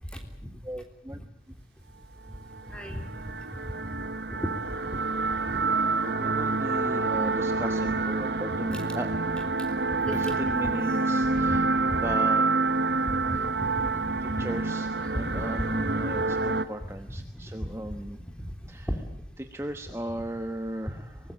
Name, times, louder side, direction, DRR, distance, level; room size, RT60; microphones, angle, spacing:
voice 1, 0.6-1.2 6.0-9.1 10.1-12.4 14.2-18.2 18.7-18.9 19.4-21.2, right 1 dB, 15° right, 7 dB, 1.1 m, -36 dB
sound 1, 2.5-16.6, right 3 dB, 80° right, 1.3 m, -27 dB
voice 2, 2.7-3.0 4.3-5.0 8.7-8.8 9.3-9.4 10.0-10.7 11.3-12.0 13.1-13.4 14.3-14.5 15.6-15.9 20.1-20.2, equal, 5° left, 4 dB, 3.4 m, -36 dB
24.0 x 20.0 x 8.9 m, 0.71 s
head